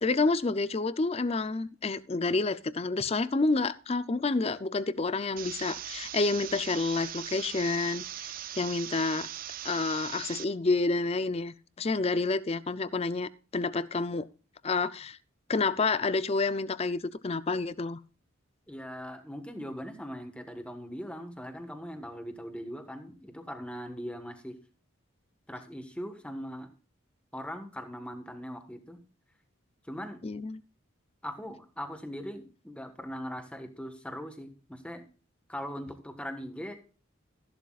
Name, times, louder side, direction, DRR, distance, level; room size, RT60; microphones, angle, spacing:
voice 1, 0.0-9.3 9.6-14.3 14.6-15.2 15.5-18.0 30.2-30.6, left 3 dB, 30° left, 0.5 m, -29 dB
sound 1, 5.4-10.4, right 11 dB, 45° right, 0.5 m, -40 dB
voice 2, 18.7-24.6 25.5-26.7 27.3-29.0 29.9-30.2 31.2-35.0 35.5-36.7, equal, 5° left, 1.3 m, -40 dB
14.0 x 11.5 x 2.4 m
head